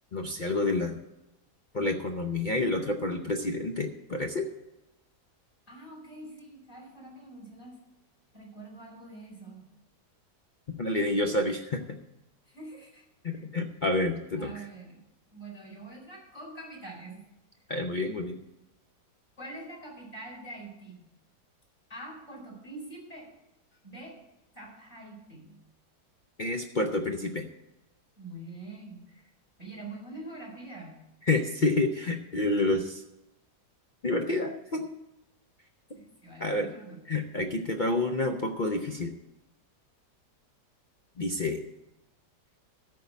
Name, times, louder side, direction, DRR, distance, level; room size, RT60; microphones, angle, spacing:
voice 1, 0.1-0.9 1.7-4.5 10.8-12.0 13.2-14.5 17.7-18.4 26.4-27.5 31.3-33.0 34.0-34.8 36.4-36.7 37.1-39.1 41.2-41.6, left 2 dB, 60° left, 3 dB, 0.5 m, -29 dB
voice 2, 5.7-7.8 8.3-9.6 12.4-13.0 14.3-15.0 15.3-17.2 19.4-21.1 21.9-23.3 23.8-24.2 24.5-25.6 28.2-29.3 29.6-31.0 35.9-37.0, right 2 dB, 25° left, -3 dB, 4.6 m, -44 dB
13.5 x 4.7 x 8.2 m, 0.92 s
omnidirectional pair, 1.9 m